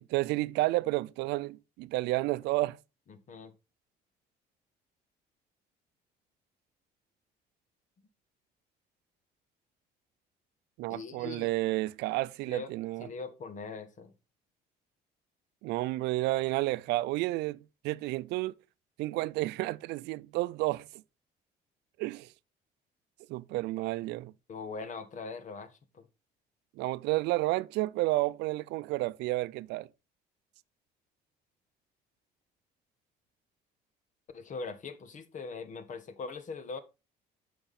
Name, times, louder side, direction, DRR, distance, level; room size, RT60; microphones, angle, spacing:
voice 1, 0.0-2.8 10.8-13.1 15.6-17.6 17.8-18.5 19.0-20.9 22.0-22.3 23.3-24.3 26.8-29.9, right 19 dB, 90° right, 0.5 m, -31 dB
voice 2, 3.1-3.5 10.9-11.5 12.4-12.7 13.0-14.1 24.5-26.1 34.3-36.8, left 4 dB, 50° left, 1.5 m, -41 dB
8.9 x 5.9 x 4.2 m
cardioid pair, 110°, 17 cm